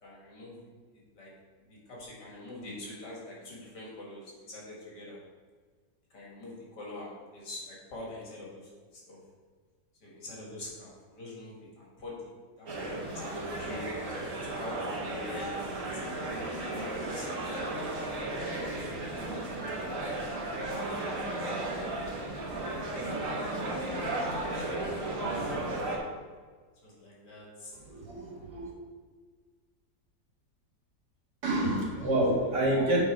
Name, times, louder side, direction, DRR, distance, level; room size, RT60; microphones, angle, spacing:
voice 1, 0.0-0.6 0.9-1.3 1.6-5.2 6.1-8.7 9.1-9.2 10.0-14.8 15.1-15.8 16.6-17.3 17.5-18.4 24.5-25.0 25.3-25.6 26.8-27.8, left 1 dB, 80° left, -4 dB, 2.5 m, -45 dB
sound 1, 12.7-26.0, right 2 dB, 50° right, 1.6 m, -34 dB
voice 2, 28.0-28.7 31.4-33.0, right 1 dB, 80° right, -5 dB, 2.6 m, -27 dB
7.6 x 4.2 x 4.6 m, 1.5 s
omnidirectional pair, 1.8 m